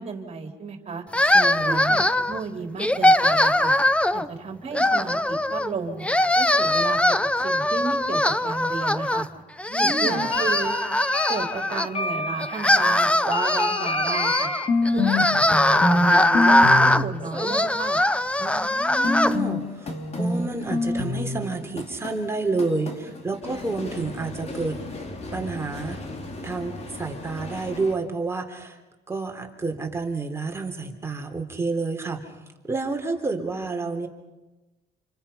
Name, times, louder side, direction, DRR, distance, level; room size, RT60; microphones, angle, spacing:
voice 1, 0.0-1.0 1.7-3.7 4.1-6.0 6.4-7.0 7.4-9.3 9.8-10.8 11.3-14.5 14.9-18.0, right 5 dB, 40° right, 4 dB, 4.0 m, -33 dB
sound 1, 1.1-2.4 2.8-4.3 4.7-5.7 6.0-9.3 9.6-11.9 12.4-19.3, left 1 dB, 5° left, 0.8 m, -21 dB
voice 2, 1.2-2.0 9.7-10.3 14.9-15.4 18.4-24.8 25.3-26.0 26.4-28.8 29.1-32.3 32.7-34.1, right 3 dB, 15° right, 3 dB, 3.6 m, -30 dB
sound 2, 10.1-15.2 15.5-16.1 16.3-17.0 19.0-27.9, left 2 dB, 40° left, 3.6 m, -28 dB
29.0 x 28.5 x 5.8 m, 1.1 s
cardioid pair, 110°, 17 cm